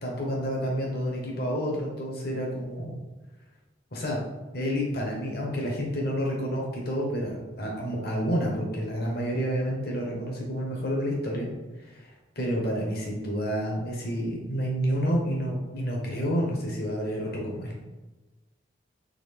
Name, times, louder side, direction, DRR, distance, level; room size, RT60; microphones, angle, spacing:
voice 1, 0.0-3.0 3.9-4.2 4.5-11.5 11.8-17.7, equal, 50° left, -2 dB, 1.1 m, -29 dB
3.9 x 3.3 x 3.5 m, 1.1 s
head